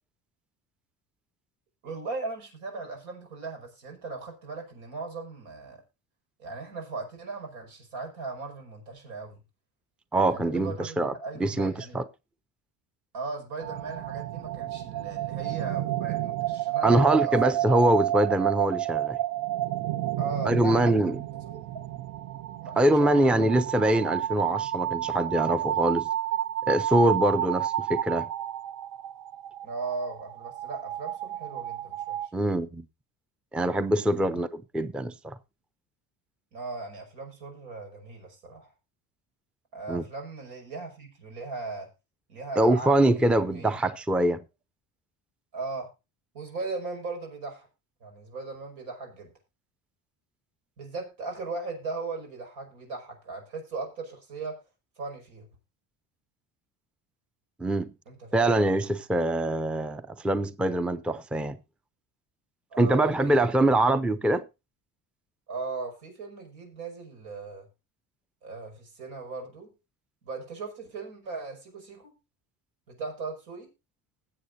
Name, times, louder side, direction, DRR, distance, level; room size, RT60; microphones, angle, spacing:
voice 1, 1.8-5.8 6.4-9.4 10.3-12.0 13.1-17.4 20.2-20.9 21.4-21.6 22.6-23.4 29.6-32.3 34.2-34.4 36.5-38.7 39.7-41.9 42.3-43.9 45.5-45.9 46.3-47.7 48.0-49.3 50.8-54.6 55.0-55.5 58.1-58.6 62.7-63.4 65.5-67.7 68.4-69.7 70.2-72.1 72.9-73.7, right 3 dB, 90° right, 5.7 m, -38 dB
voice 2, 10.1-11.1 11.4-12.1 16.8-19.2 20.4-21.2 22.8-26.1 26.7-28.3 32.3-32.9 33.5-35.4 39.9-40.0 42.6-44.4 57.6-57.9 58.3-61.6 62.8-64.5, right 1 dB, 5° right, 0.5 m, -24 dB
sound 1, 13.6-32.3, right 13 dB, 55° right, 0.6 m, -31 dB
20.5 x 7.8 x 2.6 m
cardioid pair, 100°, 41 cm